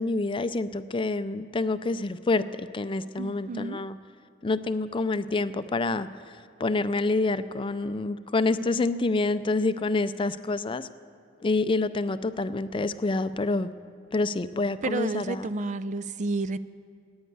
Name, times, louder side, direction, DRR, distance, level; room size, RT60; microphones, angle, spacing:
voice 1, 0.0-4.0 4.4-6.1 6.6-10.9 11.4-13.7 14.1-15.5, left 3 dB, 30° left, 12 dB, 0.5 m, -27 dB
voice 2, 3.2-3.8 14.8-16.6, right 3 dB, 40° right, 13 dB, 0.4 m, -31 dB
15.5 x 9.6 x 9.5 m, 2.3 s
head